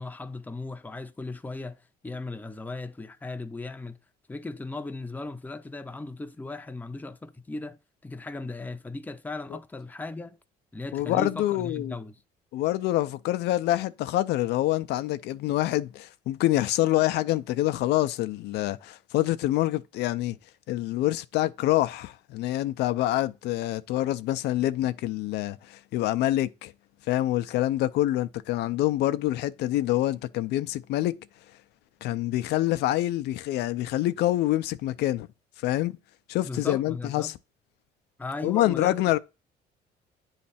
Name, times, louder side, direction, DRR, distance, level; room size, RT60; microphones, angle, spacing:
voice 1, 0.0-4.0 4.3-10.4 10.7-12.2 36.4-37.3 38.2-39.0, left 3 dB, 10° left, 0.6 m, -37 dB
voice 2, 10.9-12.0 12.5-20.4 20.7-26.7 27.1-31.2 32.0-35.3 35.6-36.0 36.3-37.3 38.4-39.2, left 15 dB, 80° left, 0.5 m, -26 dB
9.3 x 3.2 x 4.1 m
cardioid pair, 110°, 17 cm